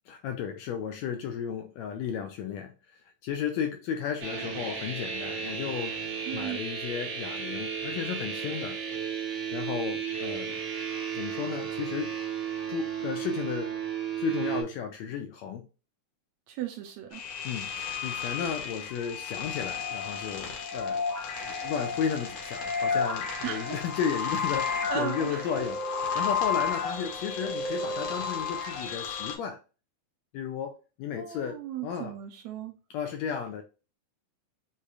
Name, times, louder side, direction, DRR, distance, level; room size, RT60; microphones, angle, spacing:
voice 1, 0.1-5.9 6.3-8.8 9.5-10.6 11.1-12.1 12.7-13.9 14.2-15.7 17.4-21.0 21.4-29.6 30.3-32.2 32.9-33.6, left 7 dB, 80° left, 1.6 m, -34 dB
sound 1, 4.2-14.6, right 7 dB, 55° right, 2.7 m, -34 dB
voice 2, 6.3-6.6 16.5-17.2 23.4-23.8 24.9-25.6 26.1-26.3 31.2-32.7, right 9 dB, 80° right, 1.7 m, -36 dB
sound 2, 17.1-29.4, left 5 dB, 60° left, 2.0 m, -32 dB
6.4 x 2.8 x 2.4 m
omnidirectional pair, 3.5 m